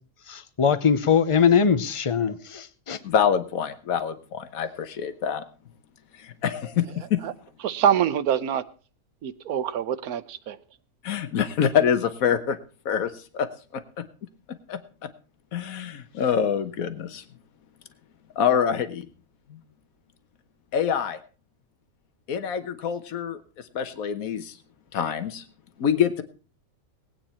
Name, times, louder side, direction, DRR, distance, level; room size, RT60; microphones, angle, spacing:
voice 1, 0.3-3.0, left 6 dB, 35° left, 0.5 m, -21 dB
voice 2, 3.0-5.4 6.1-7.2 11.0-12.6 12.8-13.5 14.7-14.8 15.5-17.2 18.4-19.1 19.5-19.6 20.7-21.2 22.3-23.4 23.7-24.6 24.9-25.4 25.8-26.2, left 8 dB, 70° left, 1.5 m, -25 dB
voice 3, 7.6-8.6 9.2-10.6, right 9 dB, 85° right, 1.3 m, -25 dB
19.0 x 8.9 x 4.3 m
omnidirectional pair, 1.5 m